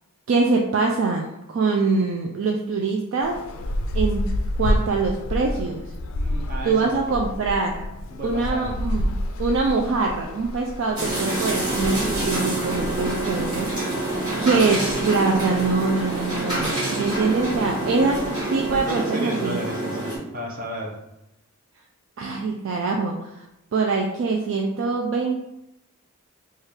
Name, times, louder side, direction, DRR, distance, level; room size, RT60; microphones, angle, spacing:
voice 1, 0.3-3.4 3.9-4.3 4.6-5.8 6.6-7.8 8.2-14.1 14.4-18.2 18.5-19.6 22.2-23.4 23.7-25.4, right 4 dB, 60° right, 1 dB, 0.3 m, -24 dB
sound 1, 3.2-18.8, left 1 dB, 65° left, 0.4 m, -31 dB
voice 2, 6.2-7.2 8.1-8.7 18.0-18.2 18.8-21.0, equal, 40° right, -1 dB, 0.7 m, -33 dB
sound 2, 11.0-20.2, right 2 dB, 20° right, 1.2 m, -26 dB
3.2 x 2.4 x 4.3 m, 0.87 s
head